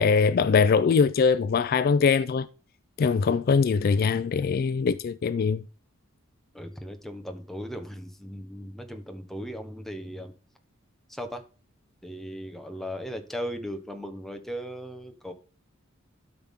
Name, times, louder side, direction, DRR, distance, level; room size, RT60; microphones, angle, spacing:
voice 1, 0.0-2.5 3.0-5.6, left 5 dB, 45° left, 0.3 m, -22 dB
voice 2, 6.5-10.3 11.1-11.4 12.0-15.3, equal, ahead, 1.0 m, -37 dB
12.0 x 5.9 x 3.6 m
head